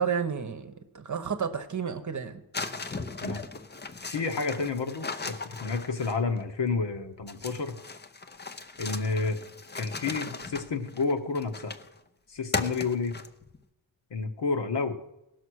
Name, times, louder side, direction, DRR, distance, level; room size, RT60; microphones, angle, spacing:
voice 1, 0.0-2.4, right 7 dB, 40° right, 9 dB, 1.1 m, -31 dB
sound 1, 2.5-6.4 7.3-12.0 12.5-13.6, left 3 dB, 20° left, 0.7 m, -37 dB
voice 2, 4.1-7.8 8.8-9.4 9.7-11.8 12.3-13.1 14.1-15.0, left 4 dB, 60° left, 6 dB, 1.4 m, -30 dB
17.0 x 6.5 x 6.4 m, 0.89 s
wide cardioid pair, 110°, 48 cm